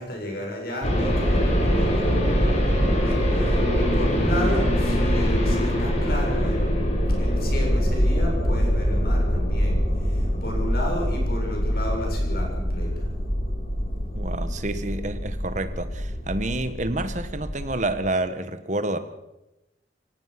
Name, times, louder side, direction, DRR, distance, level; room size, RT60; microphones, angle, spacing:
voice 1, 0.0-6.9 7.2-13.1, left 1 dB, 55° left, 7.2 m, -33 dB
sound 1, 0.8-17.9, equal, 35° left, 5.4 m, -23 dB
voice 2, 14.1-19.0, right 2 dB, 40° right, 1.5 m, -28 dB
24.0 x 17.5 x 6.1 m
head